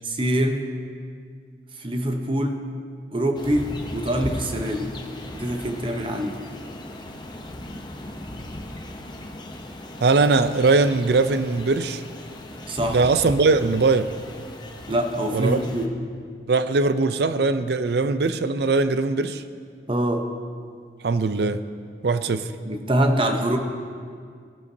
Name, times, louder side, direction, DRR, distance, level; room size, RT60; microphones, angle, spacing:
voice 1, 0.0-0.7 1.8-2.6 3.1-5.0 5.3-6.4 12.7-13.0 14.9-16.0 19.9-20.3 22.6-23.6, right 1 dB, 30° right, 4 dB, 0.8 m, -24 dB
sound 1, 3.3-15.9, left 1 dB, 25° left, 0.7 m, -37 dB
voice 2, 10.0-12.0 12.9-14.1 15.3-15.6 16.5-19.4 21.0-21.6 22.0-22.5, right 3 dB, 60° right, 11 dB, 0.5 m, -20 dB
17.5 x 11.5 x 2.7 m, 2.1 s
head